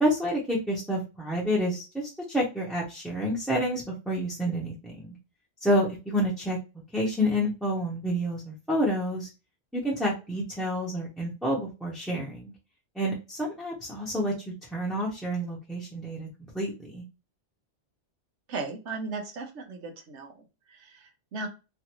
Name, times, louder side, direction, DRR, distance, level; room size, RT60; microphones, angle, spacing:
voice 1, 0.0-5.1 5.6-6.6 6.9-9.3 9.7-12.5 12.9-14.3 14.7-16.3 16.5-17.0, equal, ahead, -6 dB, 0.7 m, -29 dB
voice 2, 18.5-20.3 20.7-21.5, right 3 dB, 75° right, 5 dB, 1.1 m, -36 dB
3.2 x 2.4 x 2.9 m, 0.29 s
omnidirectional pair, 1.2 m